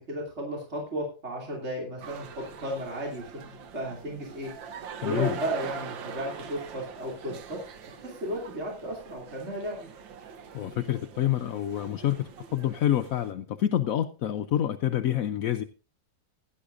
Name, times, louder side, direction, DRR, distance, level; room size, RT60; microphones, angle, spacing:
voice 1, 0.1-4.5 5.0-7.6 7.9-9.8, equal, 35° right, 3.1 m, -34 dB
sound 1, 2.0-13.3, right 6 dB, 80° right, 1.8 m, -43 dB
voice 2, 5.0-5.4 10.5-15.6, left 11 dB, 65° left, 0.9 m, -27 dB
16.5 x 10.5 x 2.6 m
omnidirectional pair, 2.0 m